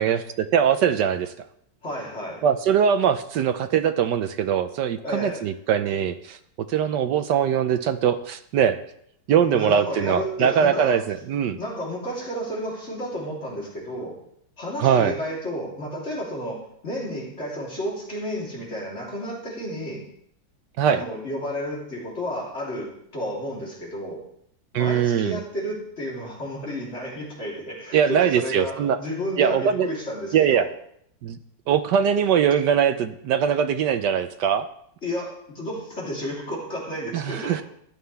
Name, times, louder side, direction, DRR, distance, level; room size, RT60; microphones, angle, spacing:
voice 1, 0.0-1.3 2.4-6.4 6.7-8.8 9.3-11.6 14.8-15.1 20.8-21.0 24.7-25.4 27.9-29.0 29.4-29.9 30.3-30.7 31.2-31.4 31.7-34.7 37.1-37.6, right 8 dB, 70° right, 11 dB, 1.2 m, -21 dB
voice 2, 1.8-2.4 5.0-5.5 9.4-11.0 11.5-14.2 14.6-20.0 20.9-24.2 24.7-30.7 35.0-37.6, equal, 35° left, -4 dB, 3.7 m, -32 dB
15.0 x 11.0 x 3.4 m, 0.71 s
omnidirectional pair, 2.1 m